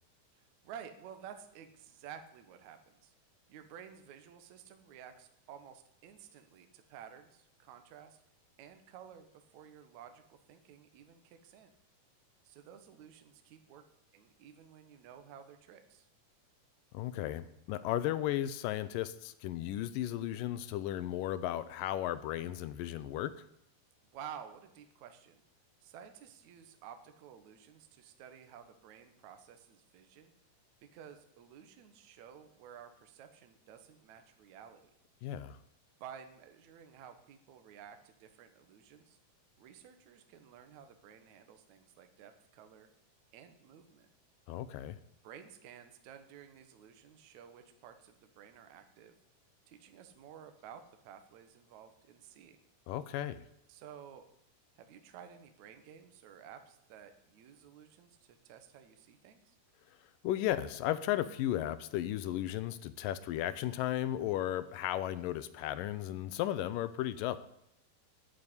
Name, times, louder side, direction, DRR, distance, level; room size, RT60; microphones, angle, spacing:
voice 1, 0.3-3.1 3.5-8.2 8.6-11.7 12.4-13.8 14.1-16.1 24.1-25.4 25.8-30.3 30.9-34.9 36.0-39.2 39.6-42.9 43.3-44.1 45.2-49.2 49.7-52.6 53.7-54.2 54.8-59.6, right 8 dB, 65° right, 7 dB, 2.1 m, -53 dB
voice 2, 16.9-23.3 35.2-35.6 44.5-45.0 52.9-53.4 60.2-67.4, left 13 dB, 75° left, 14 dB, 2.1 m, -35 dB
9.3 x 8.5 x 9.6 m, 0.77 s
omnidirectional pair, 4.4 m